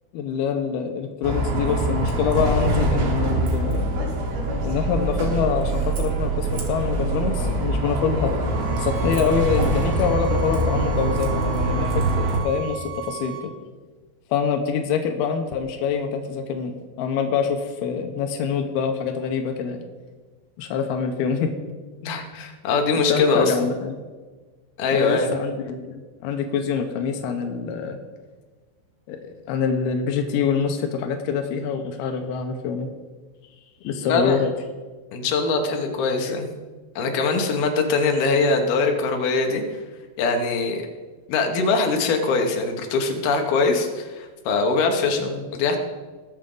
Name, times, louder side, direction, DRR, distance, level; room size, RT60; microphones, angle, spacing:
voice 1, 0.1-3.8 4.6-5.7 6.0-8.3 8.8-13.5 14.3-19.8 20.6-21.5 23.1-24.0 24.9-28.0 29.1-29.2 29.5-32.9 33.8-34.5 45.2-45.5, left 6 dB, 90° left, 5 dB, 2.2 m, -25 dB
Bus, 1.2-12.4, right 2 dB, 60° right, 3.5 m, -24 dB
sound 1, 8.4-13.5, right 10 dB, 75° right, 3.3 m, -36 dB
voice 2, 22.0-23.7 24.8-25.3 34.1-34.4 35.1-36.5 37.0-39.6 40.2-40.8 41.3-45.8, left 4 dB, 70° left, 3 dB, 2.5 m, -22 dB
20.0 x 7.5 x 3.8 m, 1.3 s
omnidirectional pair, 5.7 m